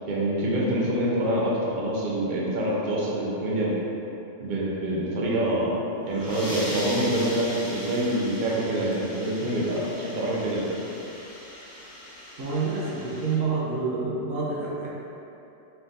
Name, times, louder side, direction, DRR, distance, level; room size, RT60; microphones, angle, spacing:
voice 1, 0.1-3.8 4.4-5.7 6.1-10.6, right 1 dB, 45° right, -6 dB, 0.8 m, -26 dB
sound 1, 5.9-13.4, equal, 80° left, 1.9 m, -39 dB
voice 2, 12.4-14.9, right 4 dB, 85° right, -5 dB, 1.2 m, -28 dB
4.6 x 3.8 x 2.6 m, 2.9 s
omnidirectional pair, 1.3 m